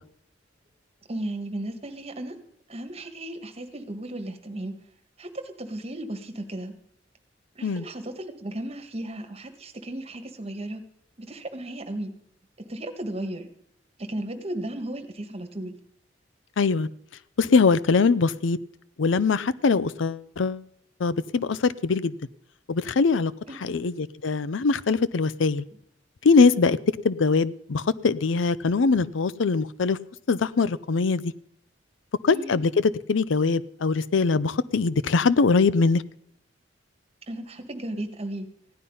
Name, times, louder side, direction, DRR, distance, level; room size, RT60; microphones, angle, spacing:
voice 1, 1.1-2.4 2.7-4.7 5.2-5.3 5.6-6.7 7.5-10.8 11.2-12.1 12.6-13.5 14.0-15.7 23.5-23.9 32.3-32.7 37.3-38.5, right 1 dB, 35° right, 6 dB, 1.6 m, -35 dB
voice 2, 16.6-16.9 17.4-18.6 19.0-20.6 21.0-22.1 22.7-23.3 23.6-25.6 26.2-26.8 27.0-30.0 30.3-31.3 32.2-36.0, left 4 dB, 85° left, 17 dB, 0.5 m, -22 dB
16.0 x 11.0 x 5.5 m, 0.72 s
head